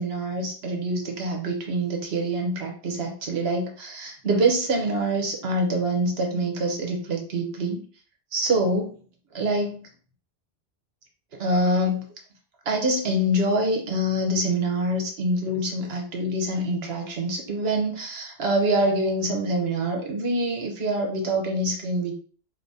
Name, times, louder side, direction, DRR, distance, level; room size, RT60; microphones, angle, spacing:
voice 1, 0.0-7.8 8.3-8.9 9.3-9.8 11.4-12.0 12.7-22.1, right 1 dB, 75° right, 2 dB, 1.1 m, -25 dB
3.7 x 2.7 x 2.6 m, 0.42 s
omnidirectional pair, 1.1 m